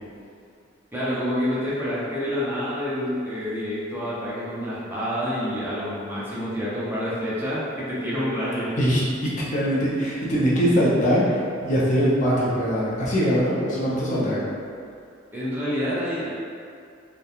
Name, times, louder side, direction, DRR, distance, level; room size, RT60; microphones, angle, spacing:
voice 1, 0.9-8.7 15.3-16.3, equal, 10° right, -9 dB, 0.5 m, -28 dB
voice 2, 8.8-14.4, equal, 40° left, -7 dB, 0.5 m, -22 dB
2.8 x 2.2 x 2.3 m, 2.3 s
head